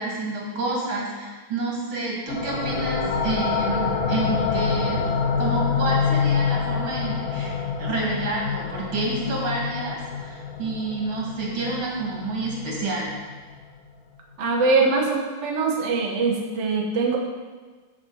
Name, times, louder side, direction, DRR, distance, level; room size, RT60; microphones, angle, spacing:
voice 1, 0.0-5.0 5.4-7.5 7.8-13.2, right 2 dB, 75° right, -4 dB, 3.2 m, -29 dB
sound 1, 2.3-13.6, left 6 dB, 50° left, 1.4 m, -26 dB
voice 2, 14.4-17.2, right 4 dB, 40° right, -1 dB, 1.2 m, -22 dB
9.2 x 5.1 x 7.1 m, 1.3 s
omnidirectional pair, 2.3 m